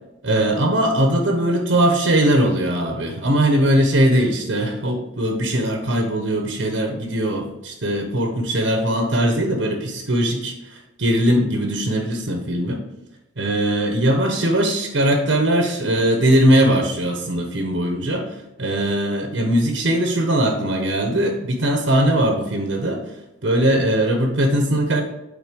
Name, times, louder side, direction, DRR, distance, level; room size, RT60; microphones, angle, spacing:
voice 1, 0.2-12.8 13.4-18.3 18.6-23.0 23.4-25.0, right 1 dB, 75° right, 3 dB, 1.1 m, -20 dB
8.4 x 4.2 x 5.2 m, 0.94 s
head